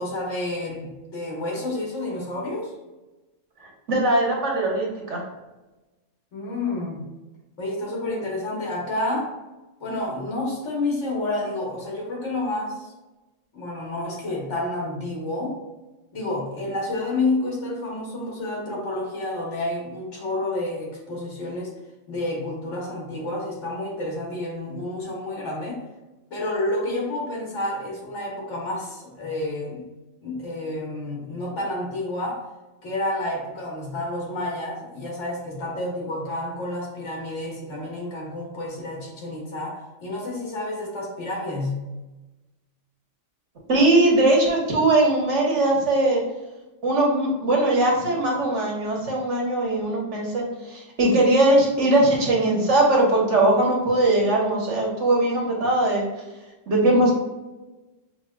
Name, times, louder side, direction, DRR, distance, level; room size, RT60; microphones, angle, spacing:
voice 1, 0.0-2.7 6.3-7.0 7.6-9.4 9.8-12.9 13.5-15.6 16.1-21.7 22.1-25.9 26.3-29.9 30.2-32.5 32.8-41.8, left 2 dB, 70° left, -3 dB, 1.6 m, -29 dB
voice 2, 3.9-5.2 43.7-46.2 46.8-56.0 56.7-57.1, right 2 dB, 70° right, -2 dB, 1.4 m, -20 dB
6.2 x 3.0 x 2.3 m, 1.1 s
omnidirectional pair, 1.3 m